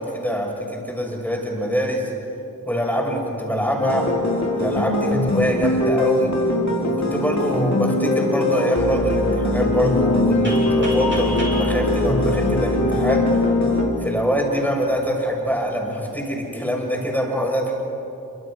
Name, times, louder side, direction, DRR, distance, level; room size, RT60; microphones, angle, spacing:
voice 1, 0.0-2.1 2.7-4.1 4.5-6.3 6.8-13.3 14.0-17.7, equal, 5° left, -1 dB, 6.7 m, -24 dB
sound 1, 3.8-13.9, left 2 dB, 50° left, 4.1 m, -21 dB
sound 2, 10.4-13.2, equal, 30° right, 7.1 m, -34 dB
27.5 x 25.0 x 6.4 m, 2.8 s
wide cardioid pair, 50°, 35 cm